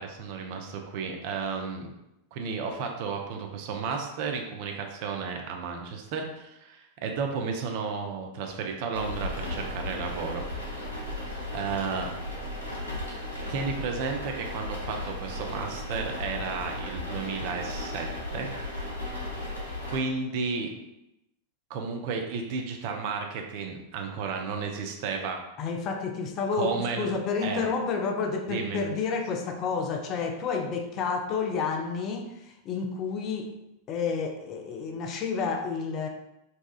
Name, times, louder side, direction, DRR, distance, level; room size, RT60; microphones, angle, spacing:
voice 1, 0.0-1.9 2.3-10.4 11.5-12.1 13.5-18.1 18.3-18.5 19.1-19.4 19.9-20.7 21.7-25.4 26.5-27.1 27.4-27.7 28.5-28.8, right 5 dB, 45° right, 3 dB, 0.4 m, -33 dB
sound 1, 8.9-20.0, left 1 dB, 80° left, 0.7 m, -35 dB
voice 2, 25.6-33.5 33.9-36.1, left 5 dB, 35° left, 3 dB, 0.3 m, -30 dB
2.7 x 2.2 x 2.3 m, 0.88 s
figure-of-eight pair, 90°, 0 cm